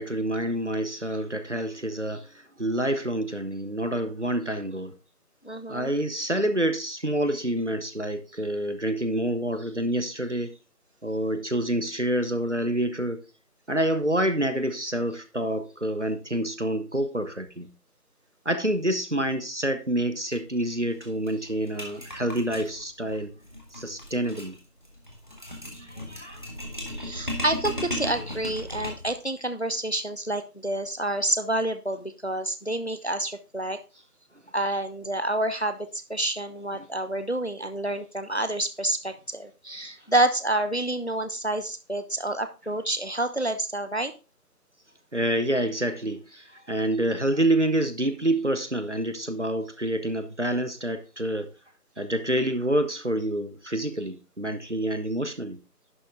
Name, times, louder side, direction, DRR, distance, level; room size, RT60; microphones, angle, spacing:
voice 1, 0.0-5.0 5.7-10.6 11.0-13.2 13.7-17.7 18.4-23.3 23.7-24.6 25.7-26.4 45.1-51.5 52.0-55.6, right 1 dB, 50° right, 0.9 m, -27 dB
voice 2, 5.4-5.9 11.3-11.4 26.9-33.8 34.5-44.1, right 1 dB, 45° left, 0.7 m, -28 dB
sound 1, 20.2-20.4 20.7-20.8 21.0-29.2, equal, 30° right, 1.7 m, -37 dB
11.0 x 5.9 x 3.6 m
figure-of-eight pair, 175°, 47 cm